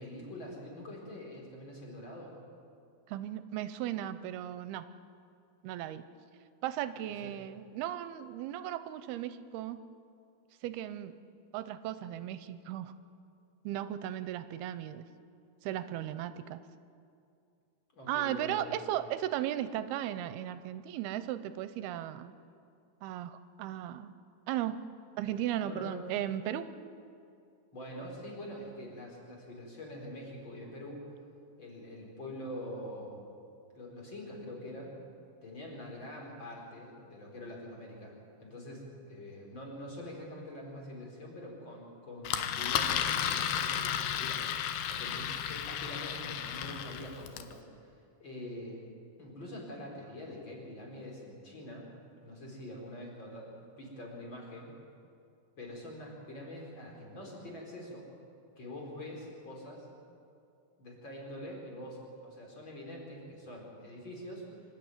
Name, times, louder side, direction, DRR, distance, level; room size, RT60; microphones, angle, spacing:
voice 1, 0.0-2.3 7.2-7.3 17.9-18.8 25.6-26.0 27.7-31.1 31.6-33.2 33.8-35.0 35.4-38.1 38.4-48.8 49.2-51.9 52.2-54.7 55.6-58.1 58.6-59.9 60.8-64.5, left 1 dB, 30° left, -1 dB, 5.2 m, -45 dB
voice 2, 3.1-4.9 5.6-6.0 6.6-9.8 10.6-11.2 11.5-12.9 13.6-15.1 15.6-16.6 18.1-22.3 23.0-24.1 24.5-24.8 25.2-26.7, right 12 dB, 85° right, 12 dB, 2.6 m, -36 dB
Engine, 42.2-47.5, left 9 dB, 85° left, 3.1 m, -33 dB
25.5 x 12.5 x 9.5 m, 2.5 s
omnidirectional pair, 4.5 m